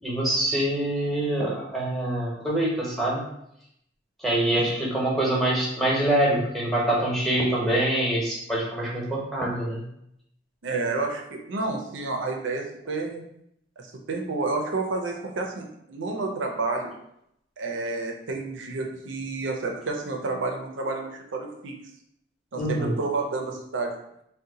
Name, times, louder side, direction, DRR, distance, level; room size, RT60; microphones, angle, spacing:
voice 1, 0.0-3.2 4.2-9.8 22.6-22.9, right 1 dB, ahead, -5 dB, 0.8 m, -25 dB
voice 2, 10.6-13.2 13.8-16.9 17.6-21.7 22.5-23.9, right 3 dB, 85° right, 2 dB, 0.5 m, -30 dB
2.7 x 2.2 x 3.8 m, 0.77 s
head